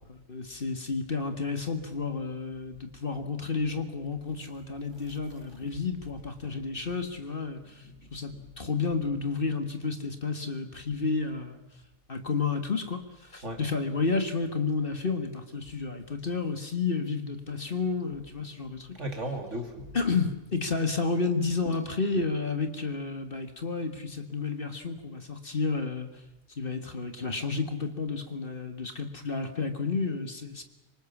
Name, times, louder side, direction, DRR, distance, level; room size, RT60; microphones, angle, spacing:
voice 1, 0.3-11.6 12.1-18.9 19.9-26.1 26.5-30.6, left 4 dB, 40° left, 8 dB, 2.0 m, -31 dB
voice 2, 5.4-5.8 6.7-6.8 7.8-8.5 13.4-13.6 18.5-18.6 18.9-20.0, right 1 dB, 60° right, 5 dB, 3.1 m, -38 dB
26.0 x 25.0 x 7.3 m, 0.98 s
omnidirectional pair, 1.4 m